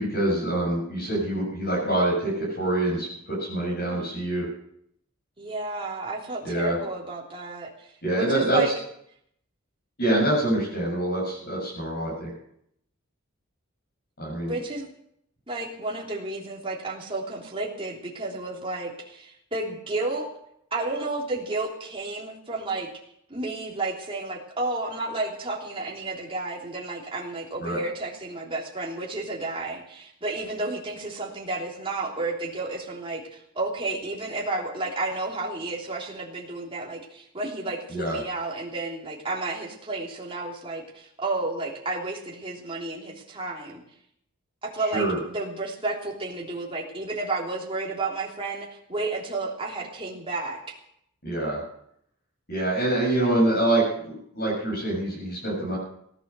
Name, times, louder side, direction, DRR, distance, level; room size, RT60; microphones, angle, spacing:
voice 1, 0.0-4.5 6.4-6.8 8.0-8.6 10.0-12.3 14.2-14.6 27.6-27.8 37.9-38.2 44.9-45.2 51.2-51.6 52.5-55.8, right 1 dB, 50° left, -5 dB, 7.4 m, -25 dB
voice 2, 5.4-7.9 8.1-8.7 14.5-14.9 15.5-20.3 20.7-22.9 23.3-43.8 44.6-50.7, right 2 dB, 25° right, -2 dB, 3.3 m, -32 dB
18.0 x 11.5 x 6.9 m, 0.73 s
head